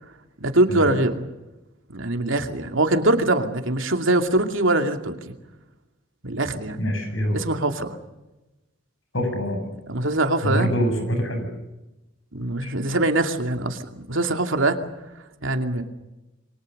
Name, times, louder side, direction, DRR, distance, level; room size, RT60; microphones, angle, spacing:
voice 1, 0.4-1.2 1.9-5.2 6.2-6.8 7.3-8.0 9.9-10.7 12.3-13.8 14.1-14.8 15.4-15.8, right 2 dB, 75° right, 5 dB, 2.6 m, -22 dB
voice 2, 6.8-7.4 9.1-9.6 10.4-11.5 12.6-12.7, equal, 75° left, 7 dB, 7.9 m, -25 dB
28.0 x 23.5 x 6.7 m, 1.0 s
head